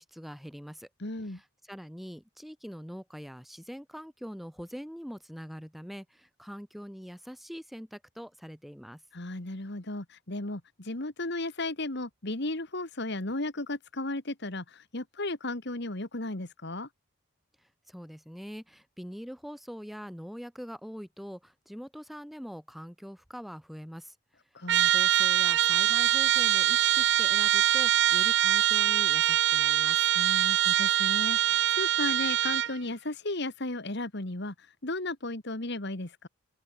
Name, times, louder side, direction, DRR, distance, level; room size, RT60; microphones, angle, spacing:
voice 1, 0.0-0.9 1.3-9.0 17.9-24.1 24.9-30.0, equal, ahead, 3.2 m, -43 dB
voice 2, 1.0-1.4 9.1-16.9 24.5-24.9 30.1-36.3, left 2 dB, 50° left, 1.9 m, -35 dB
Trumpet, 24.7-32.8, right 11 dB, 55° right, 0.6 m, -24 dB
open air
head